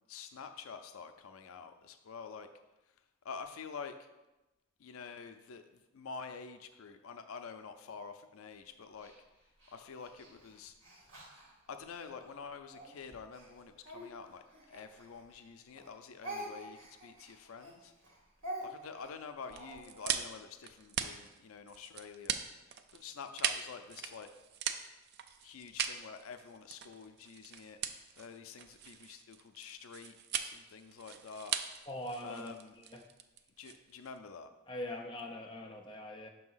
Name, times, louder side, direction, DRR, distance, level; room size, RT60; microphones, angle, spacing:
voice 1, 0.1-2.5 3.2-4.0 4.8-9.1 9.7-10.8 11.7-17.9 18.6-22.4 22.7-24.3 25.4-27.8 28.2-31.6 32.2-32.8 33.6-34.5, left 5 dB, 85° left, 8 dB, 0.4 m, -48 dB
Speech, 9.0-12.1 12.7-15.5 15.8-20.2, right 1 dB, 70° right, 1.6 m, -47 dB
sound 1, 19.5-34.2, right 8 dB, 50° right, 0.3 m, -40 dB
voice 2, 31.9-32.5 32.9-33.0 34.7-36.3, left 1 dB, 25° left, 1 dB, 0.4 m, -42 dB
6.1 x 2.8 x 5.5 m, 1.0 s
head